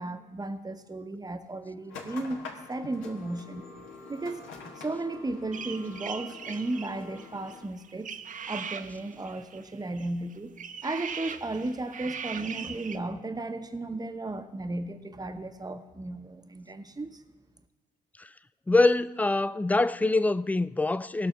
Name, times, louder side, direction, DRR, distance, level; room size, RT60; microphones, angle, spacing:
voice 1, 0.0-3.6 4.1-8.1 8.5-10.5 10.8-17.2, right 2 dB, 20° right, 1.1 m, -35 dB
sound 1, 1.9-7.6, left 4 dB, 65° left, 1.5 m, -45 dB
sound 2, 5.5-13.0, right 6 dB, 40° right, 0.7 m, -40 dB
voice 2, 18.7-21.3, left 2 dB, 5° left, 0.4 m, -24 dB
18.0 x 6.2 x 5.7 m
figure-of-eight pair, 40°, 21 cm